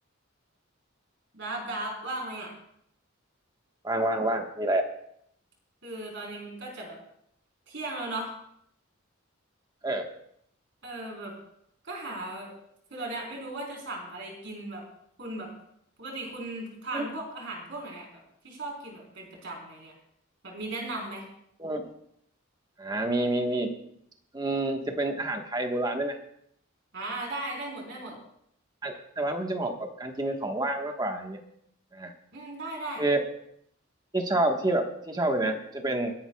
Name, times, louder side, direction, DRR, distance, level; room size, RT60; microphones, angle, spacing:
voice 1, 1.3-2.5 5.8-7.0 7.7-8.4 10.8-11.4 11.8-12.5 12.9-14.8 15.2-15.5 16.0-19.9 20.4-21.3 26.9-28.1 32.3-33.0, right 2 dB, 60° right, -1 dB, 4.1 m, -37 dB
voice 2, 3.8-4.9 9.8-10.1 16.9-17.1 21.6-21.9 22.8-23.7 24.3-26.2 28.8-31.4 31.9-32.1 33.0-33.2 34.1-36.1, right 1 dB, 20° right, 3 dB, 1.4 m, -28 dB
28.5 x 11.0 x 2.3 m, 0.70 s
head